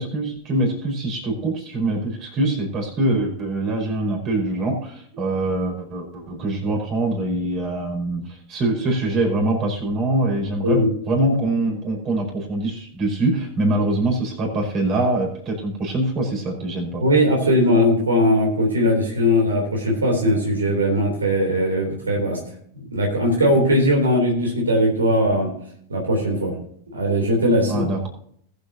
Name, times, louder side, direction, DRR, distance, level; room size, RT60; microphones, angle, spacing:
voice 1, 0.0-17.1 27.7-28.1, right 2 dB, 35° right, 1 dB, 5.1 m, -24 dB
voice 2, 17.0-22.4 22.8-25.5 25.9-26.6 26.9-27.8, equal, 75° right, 0 dB, 3.4 m, -19 dB
21.0 x 8.3 x 2.9 m, 0.62 s
figure-of-eight pair, 90°, 0 cm